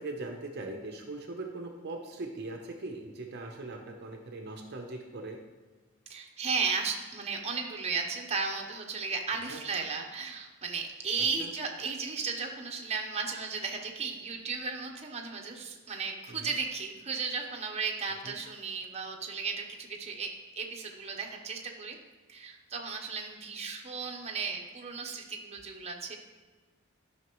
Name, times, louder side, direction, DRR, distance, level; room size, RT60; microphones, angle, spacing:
voice 1, 0.0-5.4 9.5-9.6 11.4-11.5 16.3-16.5 18.2-18.3, right 2 dB, 55° right, 3 dB, 0.7 m, -40 dB
voice 2, 6.1-22.0 22.3-26.2, right 5 dB, 30° right, 1 dB, 0.9 m, -35 dB
12.5 x 5.8 x 3.0 m, 1.3 s
head